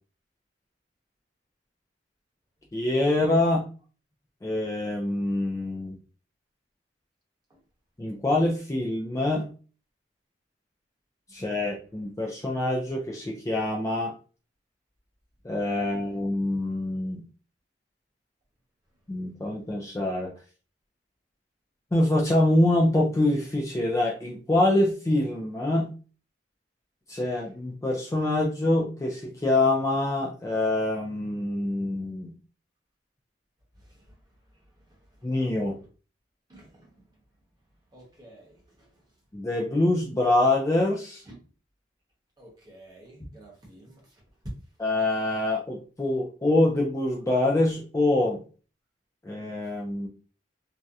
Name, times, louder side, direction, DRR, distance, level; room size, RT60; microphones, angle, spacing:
voice 1, 2.7-3.7 4.4-6.0 8.0-9.5 11.3-14.1 15.4-17.2 19.1-20.3 21.9-25.9 27.1-32.3 35.2-35.8 39.3-41.2 44.8-48.4 49.2-50.1, left 1 dB, 15° left, 0.4 m, -25 dB
voice 2, 36.5-37.0 37.9-38.9 41.3-41.4 42.4-44.0, right 1 dB, 20° right, 1.0 m, -51 dB
2.7 x 2.1 x 2.3 m
head